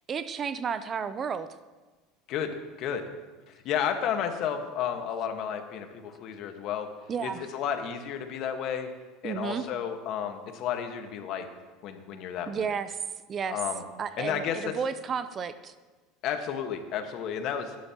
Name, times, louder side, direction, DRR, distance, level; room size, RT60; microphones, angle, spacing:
voice 1, 0.1-1.5 7.1-7.5 9.2-9.7 12.5-13.0 13.3-13.6 14.0-15.7, right 6 dB, 35° right, 13 dB, 0.6 m, -32 dB
voice 2, 2.3-3.1 3.5-8.9 9.2-11.5 11.8-12.7 13.5-13.8 14.2-14.8 16.2-17.8, left 8 dB, 55° left, 6 dB, 1.5 m, -32 dB
19.0 x 11.0 x 3.0 m, 1.3 s
supercardioid pair, 110°, 0 cm